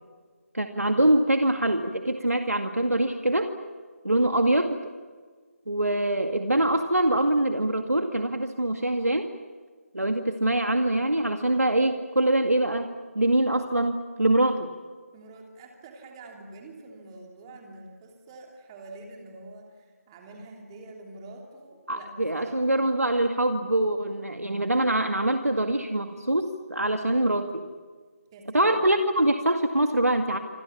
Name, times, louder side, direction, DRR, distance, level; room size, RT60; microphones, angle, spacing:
voice 1, 0.5-3.5 4.0-4.8 5.7-9.3 9.9-14.7 21.9-27.6 28.5-30.4, right 1 dB, 90° right, 6 dB, 2.2 m, -24 dB
voice 2, 15.1-22.6 28.3-28.9, right 2 dB, 20° right, 2 dB, 3.1 m, -46 dB
27.0 x 26.5 x 7.1 m, 1.5 s
figure-of-eight pair, 160°, 8 cm